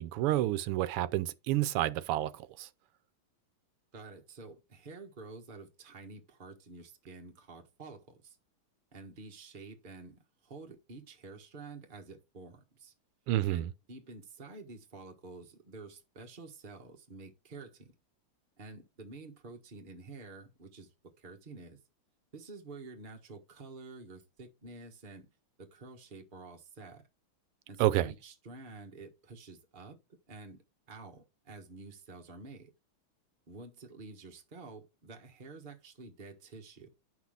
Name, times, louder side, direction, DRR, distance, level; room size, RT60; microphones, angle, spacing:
voice 1, 0.0-2.7 13.3-13.7 27.8-28.1, right 14 dB, 85° right, 1.6 m, -29 dB
voice 2, 3.9-8.4 8.9-12.9 13.5-17.9 18.6-20.9 21.2-21.8 22.3-25.3 25.6-27.0 27.7-30.0 30.3-30.6 30.9-32.7 33.5-36.9, right 3 dB, 30° right, 1.3 m, -49 dB
9.8 x 5.9 x 3.4 m
omnidirectional pair, 2.4 m